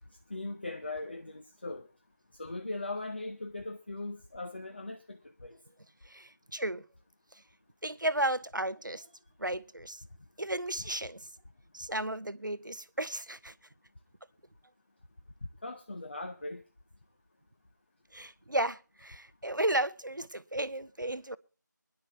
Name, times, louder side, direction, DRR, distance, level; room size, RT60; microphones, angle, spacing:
voice 1, 0.3-1.8 2.4-5.6 15.6-16.6, left 2 dB, 35° left, 1.0 m, -39 dB
voice 2, 6.0-6.8 7.3-7.4 7.8-9.1 9.4-10.0 10.4-11.3 11.7-13.5 18.1-21.4, right 1 dB, 85° right, 1.0 m, -34 dB
23.5 x 11.0 x 2.9 m
figure-of-eight pair, 170°, 10 cm